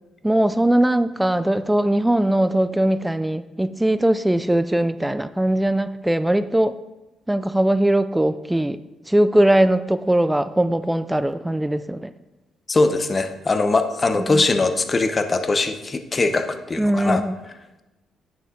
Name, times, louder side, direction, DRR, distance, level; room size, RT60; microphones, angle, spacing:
voice 1, 0.2-6.8 7.3-8.8 9.1-12.1 14.2-14.4 16.8-17.4, right 1 dB, 5° right, 12 dB, 0.3 m, -20 dB
voice 2, 12.7-17.2, left 3 dB, 30° left, 9 dB, 0.7 m, -21 dB
9.3 x 6.3 x 3.7 m, 1.0 s
cardioid pair, 90°, 0 cm